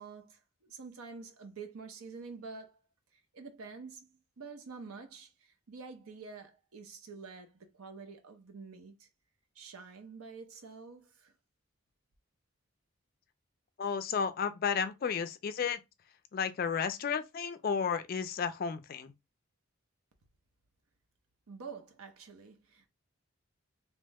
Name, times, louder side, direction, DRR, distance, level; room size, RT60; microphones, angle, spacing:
voice 1, 0.0-2.8 3.1-9.1 9.5-11.3 21.5-22.9, right 4 dB, 90° right, 0.7 m, -48 dB
voice 2, 13.8-15.8 16.3-19.1, left 6 dB, 45° left, 0.3 m, -32 dB
2.9 x 2.1 x 3.4 m
head